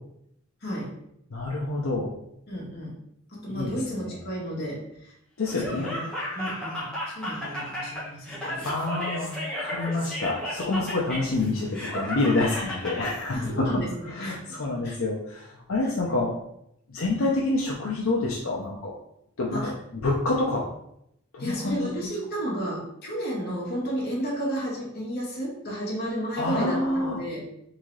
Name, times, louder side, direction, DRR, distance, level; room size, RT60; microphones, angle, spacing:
voice 1, 1.3-2.1 3.5-4.1 5.4-5.9 8.6-16.3 16.9-18.9 19.4-20.7 21.3-21.9 26.4-27.2, left 2 dB, 70° left, -3 dB, 0.6 m, -27 dB
voice 2, 2.5-2.9 3.3-5.1 5.6-6.0 6.3-8.7 13.3-14.4 14.8-14.9 15.8-15.9 19.5-19.7 21.4-27.4, right 1 dB, 50° left, -4 dB, 1.4 m, -32 dB
Laughter, 5.5-13.2, left 1 dB, 5° left, 1.3 m, -34 dB
3.9 x 3.7 x 3.2 m, 0.76 s
head